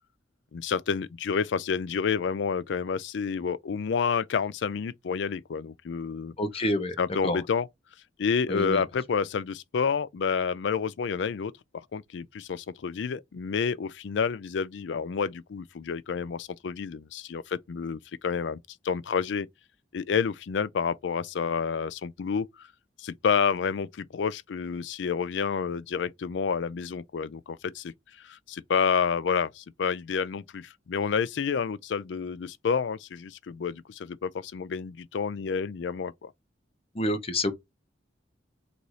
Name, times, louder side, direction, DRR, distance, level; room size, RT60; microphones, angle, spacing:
voice 1, 0.5-6.3 7.0-7.7 8.2-11.5 11.9-18.6 18.8-19.5 19.9-22.7 23.0-36.3, left 6 dB, 70° left, 0.4 m, -29 dB
voice 2, 6.4-7.0 7.2-7.4 8.5-8.8 36.9-37.5, left 1 dB, 30° left, 0.9 m, -27 dB
4.0 x 2.6 x 4.7 m
head